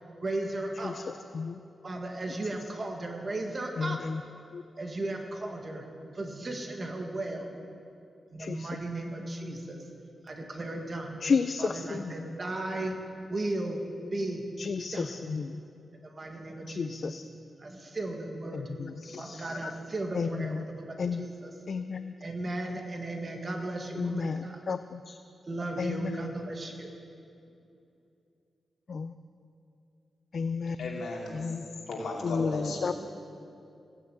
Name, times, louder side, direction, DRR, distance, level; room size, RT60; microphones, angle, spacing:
voice 1, 0.2-1.0 1.8-4.0 4.8-5.9 6.1-7.5 8.3-9.9 10.2-11.2 11.6-13.0 13.3-13.8 14.1-14.5 14.9-15.1 16.0-17.2 17.6-18.7 19.2-21.5 22.2-24.6 25.5-27.0, right 2 dB, 35° right, 2 dB, 1.9 m, -35 dB
voice 2, 3.8-4.2 4.5-4.6 8.4-8.7 11.2-12.1 14.6-15.5 16.7-17.2 18.5-19.7 20.1-20.6 21.0-21.3 21.7-22.1 24.0-25.2 25.8-26.3 28.9-29.1 30.3-31.0 31.3-31.8 32.2-32.9, left 5 dB, 55° left, 10 dB, 0.4 m, -32 dB
voice 3, 30.8-31.5 31.9-32.9, left 2 dB, 90° left, -2 dB, 2.9 m, -35 dB
16.0 x 9.5 x 8.6 m, 2.6 s
wide cardioid pair, 125°, 0 cm